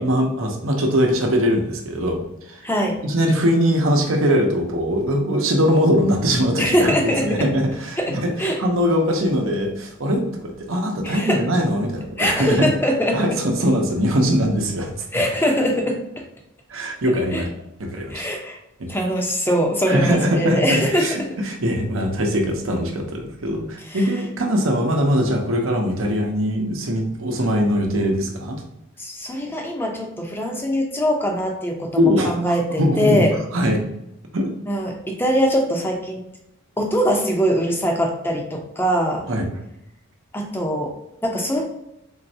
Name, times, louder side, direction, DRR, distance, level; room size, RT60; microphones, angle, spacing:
voice 1, 0.0-2.2 2.5-2.6 3.0-12.7 13.1-15.2 16.7-17.5 17.8-18.3 18.8-18.9 19.9-28.6 32.0-33.8 34.3-34.5 39.3-39.5, equal, 70° right, 2 dB, 0.8 m, -21 dB
voice 2, 2.6-3.0 6.6-7.5 8.0-8.6 11.0-11.4 12.2-13.4 15.1-16.2 17.3-17.4 18.1-18.6 18.9-21.3 23.8-24.1 29.0-33.4 34.7-36.2 36.8-39.3 40.3-41.7, equal, 10° left, 1 dB, 0.6 m, -22 dB
3.9 x 3.1 x 2.7 m, 0.84 s
head